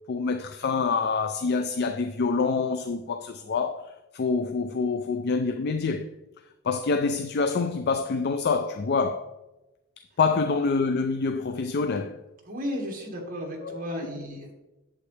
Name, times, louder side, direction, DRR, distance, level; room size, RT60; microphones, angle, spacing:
voice 1, 0.1-6.1 6.6-9.3 10.2-12.2 13.6-13.8, left 4 dB, 50° left, 0.4 m, -26 dB
voice 2, 12.4-14.5, equal, 40° right, 1.7 m, -34 dB
8.3 x 7.6 x 3.3 m
head